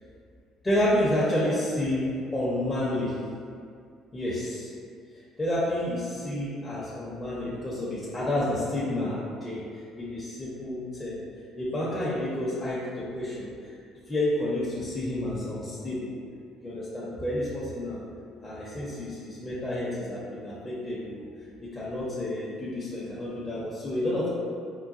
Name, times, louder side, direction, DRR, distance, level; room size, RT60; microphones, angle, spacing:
voice 1, 0.6-3.2 4.1-4.7 5.4-9.6 10.0-11.2 11.6-13.5 14.1-16.2 16.6-18.0 18.4-21.2 21.6-24.3, left 1 dB, 20° left, -8 dB, 0.7 m, -30 dB
3.8 x 2.2 x 2.5 m, 2.2 s
supercardioid pair, 75°, 0 cm